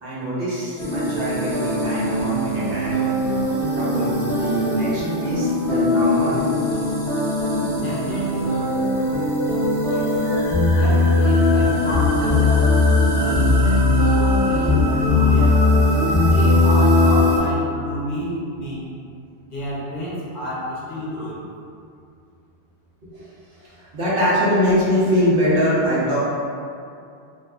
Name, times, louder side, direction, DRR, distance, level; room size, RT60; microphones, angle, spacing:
voice 1, 0.0-3.1 3.7-6.4 23.9-26.2, equal, 65° right, -8 dB, 0.9 m, -22 dB
sound 1, 0.8-17.4, left 2 dB, 5° left, 0.6 m, -19 dB
voice 2, 7.7-8.5 9.9-10.2 10.6-12.8 13.1-15.6 16.3-18.8 19.4-21.5, equal, 60° left, -7 dB, 0.7 m, -30 dB
2.7 x 2.4 x 2.2 m, 2.4 s
omnidirectional pair, 1.0 m